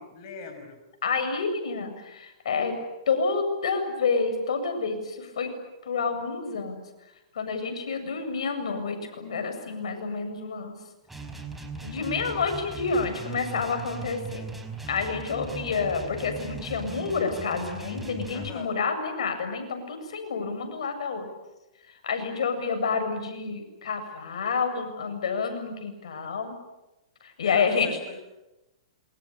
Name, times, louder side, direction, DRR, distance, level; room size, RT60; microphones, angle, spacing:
voice 1, 0.0-0.8 18.3-18.7 27.4-28.2, left 5 dB, 45° left, 5 dB, 5.7 m, -41 dB
voice 2, 1.0-2.7 3.1-5.5 5.8-6.8 7.3-10.8 11.8-14.4 14.9-21.3 21.9-26.5 27.2-28.0, left 5 dB, 75° left, 6 dB, 7.7 m, -29 dB
sound 1, 11.1-18.5, right 2 dB, 5° right, 5.0 m, -39 dB
27.5 x 25.0 x 8.5 m, 0.99 s
hypercardioid pair, 130°, 3 cm